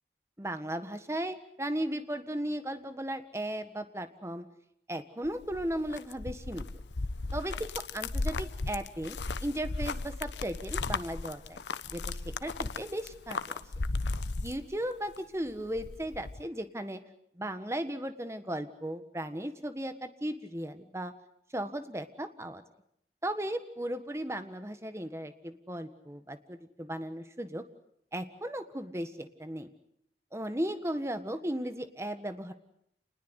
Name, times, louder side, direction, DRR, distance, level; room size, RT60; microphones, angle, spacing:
voice 1, 0.4-4.4 4.9-6.6 7.3-11.6 11.9-13.6 14.4-17.0 17.3-21.1 21.5-22.6 23.2-27.6 28.1-29.7 30.3-32.5, right 1 dB, 15° right, 9 dB, 1.5 m, -36 dB
sound 1, 5.2-15.2 15.5-16.4, left 3 dB, 85° left, 0.9 m, -36 dB
27.5 x 20.5 x 8.2 m, 0.74 s
head